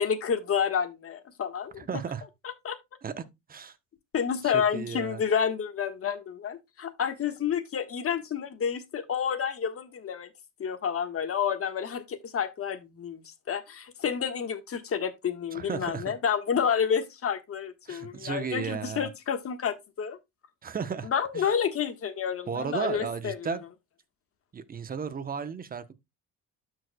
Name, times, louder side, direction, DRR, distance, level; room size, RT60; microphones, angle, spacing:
voice 1, 0.0-2.0 2.6-2.8 4.1-10.3 10.6-20.2 21.0-23.6, left 7 dB, 40° left, 1.4 m, -29 dB
voice 2, 1.8-2.2 3.0-3.2 3.5-3.8 4.4-5.2 15.5-16.1 17.9-19.1 20.6-21.1 21.3-21.5 22.5-23.6 24.5-25.9, right 6 dB, 25° right, 0.8 m, -34 dB
12.5 x 4.8 x 2.2 m
cardioid pair, 100°, 34 cm